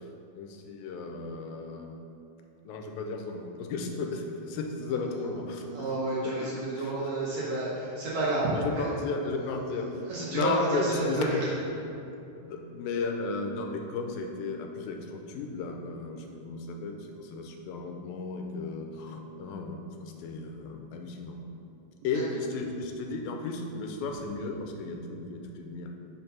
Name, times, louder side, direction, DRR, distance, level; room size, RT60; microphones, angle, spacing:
voice 1, 0.4-2.0 2.7-5.9 6.2-7.0 7.8-7.9 8.5-9.9 10.3-11.5 12.3-21.4 22.0-25.9, left 3 dB, 90° left, 3 dB, 2.4 m, -34 dB
voice 2, 5.7-8.9 10.1-11.5, right 2 dB, 65° right, -7 dB, 1.8 m, -30 dB
5.6 x 4.5 x 5.5 m, 2.7 s
omnidirectional pair, 4.0 m